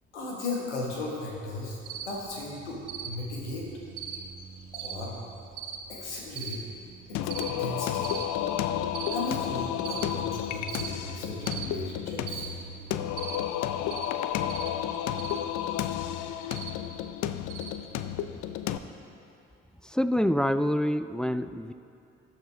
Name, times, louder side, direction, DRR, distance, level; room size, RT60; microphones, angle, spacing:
voice 1, 0.1-3.7 4.7-5.2 5.9-6.6 7.1-8.2 9.1-12.5, left 2 dB, 90° left, -3 dB, 1.5 m, -36 dB
Cricket, 1.9-18.6, right 7 dB, 70° right, 1.0 m, -42 dB
Singing, 7.1-18.8, left 11 dB, 60° left, 0.6 m, -32 dB
voice 2, 19.8-21.7, equal, ahead, 11 dB, 0.3 m, -26 dB
19.0 x 6.6 x 3.4 m, 2.6 s
hypercardioid pair, 45°, 33 cm